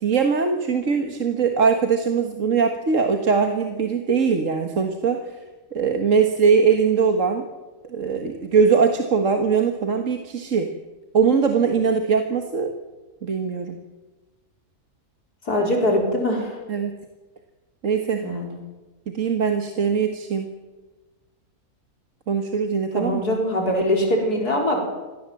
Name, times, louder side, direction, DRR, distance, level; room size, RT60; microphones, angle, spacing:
voice 1, 0.0-5.4 5.7-7.5 7.9-10.7 11.1-12.7 13.2-13.8 16.7-16.9 17.8-18.3 19.1-20.5 22.3-23.2, right 5 dB, 55° right, 5 dB, 1.9 m, -21 dB
voice 2, 15.4-16.6 18.2-18.5 22.9-24.8, left 1 dB, 85° left, 1 dB, 4.8 m, -22 dB
25.0 x 18.5 x 7.7 m, 1.2 s
omnidirectional pair, 1.6 m